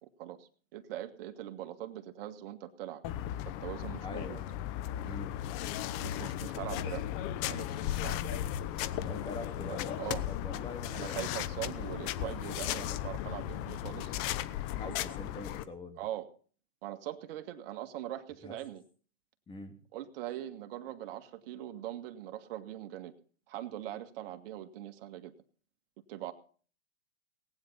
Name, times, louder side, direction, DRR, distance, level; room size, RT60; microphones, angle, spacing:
voice 1, 0.0-3.0 3.6-4.4 6.0-7.0 7.5-8.4 9.7-10.2 10.5-10.6 10.9-14.1 14.8-15.0 16.0-16.3 16.8-18.8 19.9-23.1 23.5-25.3 26.1-26.3, right 13 dB, 50° right, 8 dB, 2.1 m, -42 dB
sound 1, 3.0-15.6, left 12 dB, 35° left, 1.0 m, -36 dB
voice 2, 4.0-4.5 5.0-5.4 9.0-11.3 12.6-12.9 14.7-16.0 18.4-18.6 19.5-19.8, left 2 dB, 15° left, 6 dB, 2.9 m, -44 dB
19.0 x 9.7 x 5.7 m, 0.42 s
hypercardioid pair, 135°, 37 cm